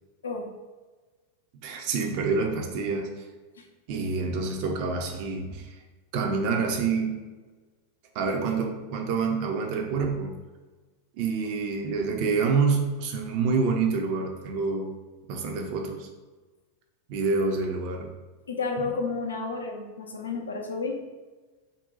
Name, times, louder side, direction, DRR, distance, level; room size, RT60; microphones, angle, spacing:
voice 1, 1.6-3.1 3.9-5.6 6.1-7.2 8.1-10.3 11.2-14.9 15.3-16.1 17.1-18.1, right 4 dB, 45° right, 2 dB, 0.5 m, -27 dB
voice 2, 18.5-21.0, left 4 dB, 70° left, 2 dB, 0.5 m, -31 dB
2.6 x 2.1 x 3.9 m, 1.3 s
figure-of-eight pair, 90°, 0 cm